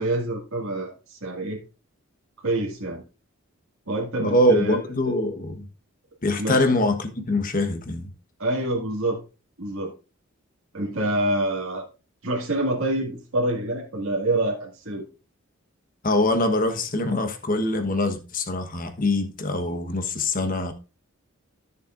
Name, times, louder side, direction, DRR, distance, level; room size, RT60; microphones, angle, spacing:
voice 1, 0.0-1.6 2.4-3.0 3.9-4.8 5.1-5.2 6.4-6.6 8.4-9.2 9.6-9.9 10.7-11.9 12.2-15.0, right 1 dB, 75° right, 2.1 m, -26 dB
voice 2, 4.2-5.7 6.2-8.0 16.0-20.7, left 1 dB, 40° left, 1.2 m, -23 dB
14.0 x 6.7 x 2.5 m
head